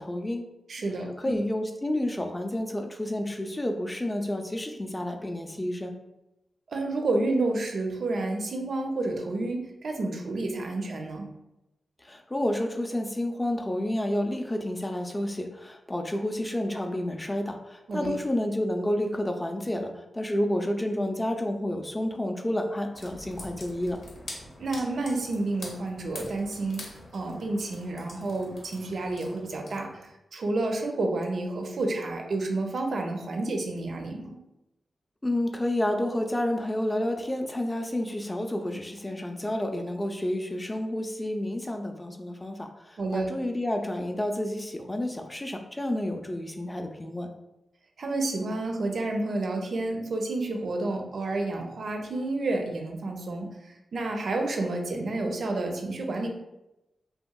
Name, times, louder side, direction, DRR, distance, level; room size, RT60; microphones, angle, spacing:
voice 1, 0.0-0.5 1.2-5.9 12.0-24.0 35.2-47.3, left 1 dB, 20° left, 4 dB, 0.4 m, -30 dB
voice 2, 0.7-1.4 6.7-11.3 17.9-18.1 24.6-34.4 43.0-43.3 48.0-56.3, right 2 dB, 70° right, 3 dB, 0.4 m, -30 dB
sound 1, 22.9-30.1, left 1 dB, 85° left, 0.7 m, -45 dB
2.8 x 2.6 x 2.3 m, 0.92 s
cardioid pair, 65°, 0 cm